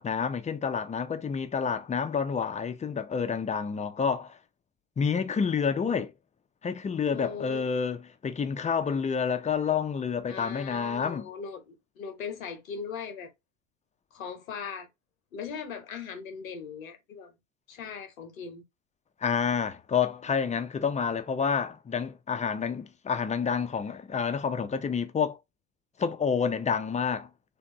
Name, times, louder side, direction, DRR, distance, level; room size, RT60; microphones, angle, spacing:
voice 1, 0.0-4.4 5.0-6.1 6.6-8.0 8.2-11.3 19.2-25.4 26.0-27.3, left 6 dB, 20° left, 0.5 m, -29 dB
voice 2, 7.1-7.7 10.3-13.3 14.1-14.9 15.3-17.4 17.7-18.6, left 6 dB, 80° left, 0.9 m, -39 dB
3.4 x 2.5 x 2.9 m
hypercardioid pair, 75°, 40 cm